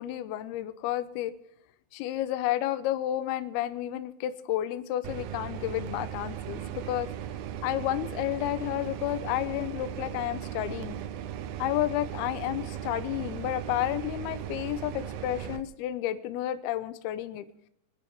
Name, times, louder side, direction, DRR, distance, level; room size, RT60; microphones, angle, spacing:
voice 1, 0.0-1.3 1.9-7.1 7.6-11.0 11.6-17.5, left 13 dB, 80° left, 11 dB, 2.4 m, -31 dB
sound 1, 5.0-15.6, right 10 dB, 75° right, 2.3 m, -37 dB
22.5 x 11.0 x 3.5 m, 0.77 s
omnidirectional pair, 5.2 m